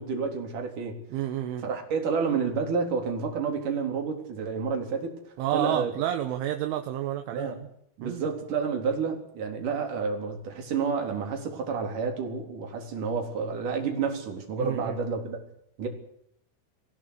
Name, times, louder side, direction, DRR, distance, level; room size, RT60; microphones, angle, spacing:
voice 1, 0.0-1.0 1.6-5.9 7.3-7.6 8.0-15.4 15.8-15.9, right 5 dB, 40° right, 3 dB, 4.8 m, -30 dB
voice 2, 1.1-1.6 5.4-7.7 8.0-8.3 14.6-15.0, right 12 dB, 75° right, 6 dB, 3.5 m, -30 dB
24.0 x 16.0 x 8.4 m, 0.73 s
omnidirectional pair, 6.0 m